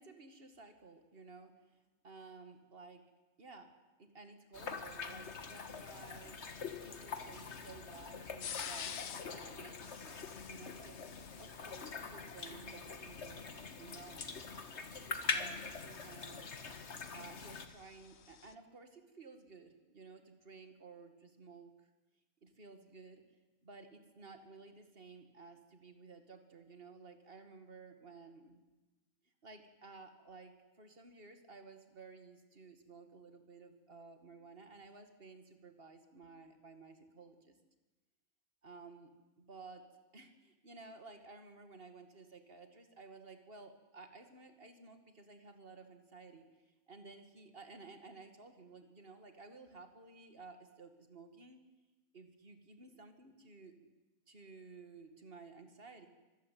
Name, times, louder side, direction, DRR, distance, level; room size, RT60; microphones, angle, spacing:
voice 1, 0.0-1.8 2.0-3.0 3.4-3.7 4.0-6.4 6.8-10.2 10.4-11.0 11.4-13.5 13.8-14.3 15.2-16.8 17.1-21.9 22.4-23.2 23.6-28.6 29.4-37.6 38.6-39.1 39.4-39.9 40.1-51.6 52.1-53.9 54.3-56.1, right 4 dB, 40° right, 7 dB, 2.4 m, -55 dB
sound 1, 4.5-17.7, left 4 dB, 55° left, 1.8 m, -44 dB
sound 2, 8.4-9.3 9.8-11.9 14.5-18.5, left 8 dB, 70° left, 1.4 m, -49 dB
24.5 x 15.5 x 9.4 m, 1.1 s
omnidirectional pair, 1.5 m